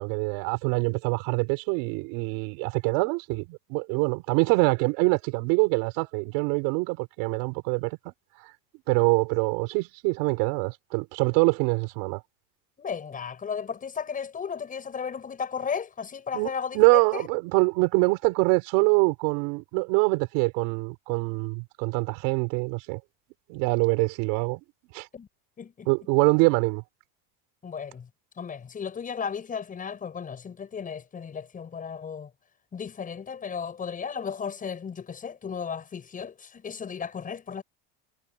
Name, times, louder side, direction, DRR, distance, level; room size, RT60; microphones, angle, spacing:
voice 1, 0.0-8.1 8.9-12.2 16.3-23.0 23.5-24.6 24.9-25.1 25.9-26.8, right 30 dB, 75° right, 6.1 m, -24 dB
voice 2, 12.8-17.2 25.1-25.3 25.6-25.9 27.6-28.1 28.4-32.3 32.7-37.6, left 6 dB, 20° left, 7.8 m, -34 dB
cardioid pair, 175°, 39 cm